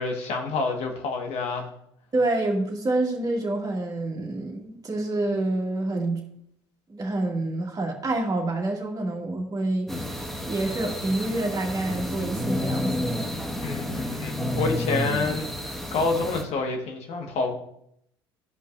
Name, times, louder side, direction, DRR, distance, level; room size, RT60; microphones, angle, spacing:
voice 1, 0.0-1.7 13.6-17.5, left 3 dB, 55° left, 3 dB, 1.6 m, -28 dB
voice 2, 2.1-6.2 6.9-13.0, right 2 dB, 25° right, -1 dB, 2.2 m, -27 dB
sound 1, 9.9-16.4, left 1 dB, ahead, 1.6 m, -30 dB
13.5 x 5.4 x 2.6 m, 0.74 s
hypercardioid pair, 65°, 13 cm